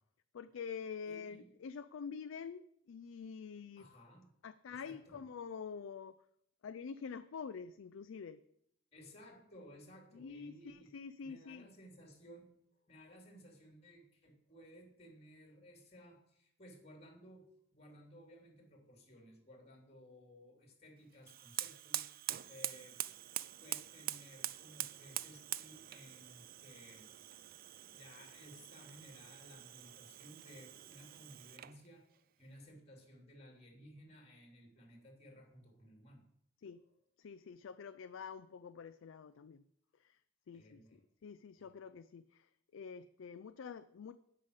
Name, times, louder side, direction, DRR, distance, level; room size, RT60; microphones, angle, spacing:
voice 1, 0.3-3.9 4.4-6.2 6.6-8.4 10.1-11.7 36.6-36.8 37.2-39.6 40.0-40.2 40.5-44.2, left 6 dB, 90° left, 11 dB, 0.4 m, -47 dB
voice 2, 1.1-1.5 3.8-4.3 4.7-5.2 8.9-10.9 11.2-12.5 12.7-22.1 22.5-23.0 23.3-27.1 27.6-36.2 40.5-41.0 41.6-41.7, equal, 30° left, 1 dB, 3.1 m, -58 dB
Fire, 21.2-31.8, right 14 dB, 50° right, 0.4 m, -45 dB
10.5 x 5.6 x 8.0 m, 0.73 s
head